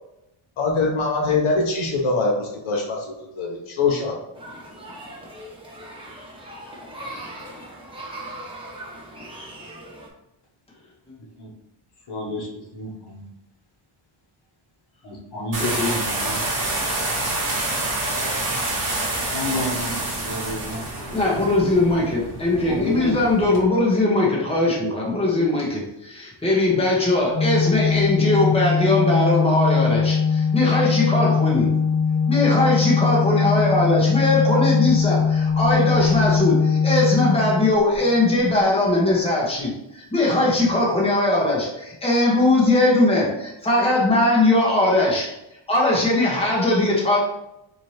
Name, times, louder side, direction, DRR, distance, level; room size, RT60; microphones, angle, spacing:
voice 1, 0.6-4.1, left 3 dB, 75° left, 0 dB, 0.9 m, -23 dB
sound 1, 4.4-10.1, right 1 dB, 10° right, 0.8 m, -39 dB
voice 2, 12.1-13.3 15.0-16.4 19.3-21.2 22.7-23.2, left 1 dB, 50° left, -2 dB, 1.2 m, -31 dB
sound 2, 15.5-23.6, right 2 dB, 40° right, 1.4 m, -27 dB
voice 3, 15.6-15.9 21.1-31.7 32.3-45.3 45.7-47.2, left 2 dB, 10° left, -4 dB, 1.0 m, -20 dB
Organ, 27.3-38.2, left 5 dB, 35° left, 0.4 m, -21 dB
4.3 x 2.8 x 3.2 m, 0.86 s
wide cardioid pair, 150°, 50 cm